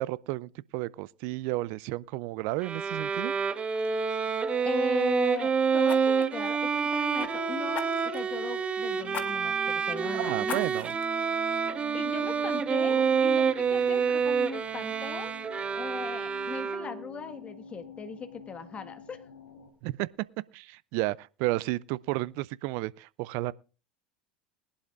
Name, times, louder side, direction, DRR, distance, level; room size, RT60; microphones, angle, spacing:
voice 1, 0.0-3.3 10.1-10.9 19.8-20.1 20.5-23.5, right 19 dB, 55° right, 0.5 m, -32 dB
Bowed string instrument, 2.6-17.1, right 6 dB, 25° right, 1.0 m, -28 dB
Fire, 3.2-3.4 3.7-3.9 5.8-7.3 7.7-8.3 9.1-9.3 9.7-9.8 10.4-11.1 11.6-11.7, left 9 dB, 40° left, 1.6 m, -40 dB
voice 2, 4.6-10.6 11.9-15.3 15.7-19.2, left 5 dB, 25° left, 1.6 m, -38 dB
sound 1, 7.2-19.7, left 6 dB, 75° left, 2.4 m, -46 dB
21.0 x 11.5 x 2.5 m
hypercardioid pair, 85°, 5 cm